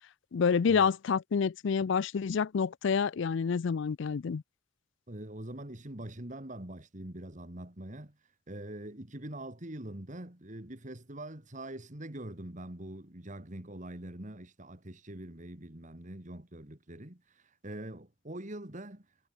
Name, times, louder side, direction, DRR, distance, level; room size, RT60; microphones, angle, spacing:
voice 1, 0.3-4.4, left 6 dB, 60° left, 0.4 m, -28 dB
voice 2, 5.1-8.2 8.5-19.1, right 1 dB, 35° right, 2.4 m, -43 dB
head